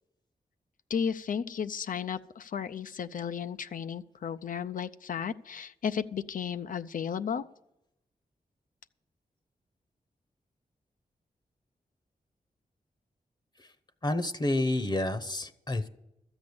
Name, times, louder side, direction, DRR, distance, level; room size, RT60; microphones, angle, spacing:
voice 1, 0.9-7.4, left 7 dB, 65° left, 11 dB, 0.4 m, -34 dB
voice 2, 14.0-15.9, left 1 dB, 30° left, 12 dB, 0.8 m, -29 dB
13.0 x 8.0 x 6.9 m, 0.86 s
cardioid pair, 70°, 15 cm